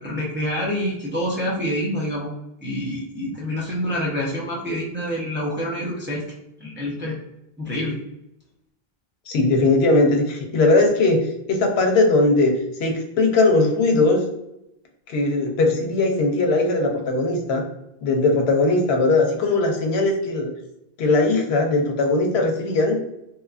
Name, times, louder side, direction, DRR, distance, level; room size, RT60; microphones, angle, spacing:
voice 1, 0.0-2.3 2.6-6.2 6.6-7.2 7.6-8.0, equal, 20° right, -4 dB, 0.3 m, -27 dB
voice 2, 9.3-11.2 11.5-12.5 12.8-14.2 15.1-17.6 18.0-20.5 21.0-23.0, left 2 dB, 90° left, 3 dB, 0.8 m, -19 dB
2.8 x 2.3 x 2.4 m, 0.85 s
omnidirectional pair, 1.0 m